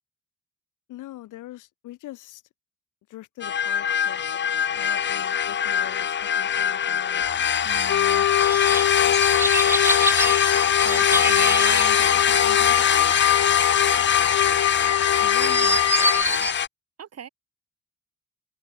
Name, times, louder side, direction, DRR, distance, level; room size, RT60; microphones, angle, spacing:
voice 1, 0.9-2.4 3.1-4.4 4.7-7.2 15.2-16.5, left 16 dB, 85° left, 2.4 m, -42 dB
sound 1, 3.4-16.7, left 8 dB, 40° left, 0.7 m, -23 dB
voice 2, 7.6-8.3 10.8-13.2 17.0-17.3, right 8 dB, 55° right, 3.5 m, -40 dB
sound 2, 7.9-16.2, left 11 dB, 60° left, 1.1 m, -23 dB
sound 3, 8.4-16.5, right 2 dB, 10° right, 0.7 m, -28 dB
open air
cardioid pair, 90°, 30 cm